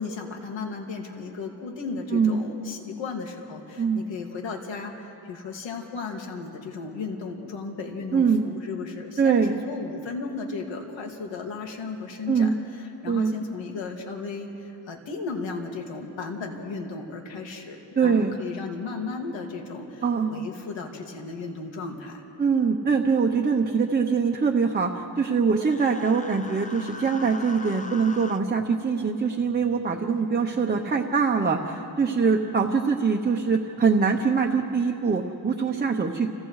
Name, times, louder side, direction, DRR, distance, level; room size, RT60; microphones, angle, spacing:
voice 1, 0.0-22.2, left 4 dB, 85° left, 1 dB, 2.3 m, -35 dB
voice 2, 2.1-2.5 3.8-4.0 8.1-8.4 9.2-9.6 12.3-12.6 13.1-13.4 18.0-18.4 20.0-20.5 22.4-36.3, right 5 dB, 20° right, 1 dB, 0.8 m, -23 dB
Human voice, 25.6-28.4, left 3 dB, 20° left, 0.5 m, -41 dB
30.0 x 29.0 x 3.2 m, 2.9 s
wide cardioid pair, 175°, 44 cm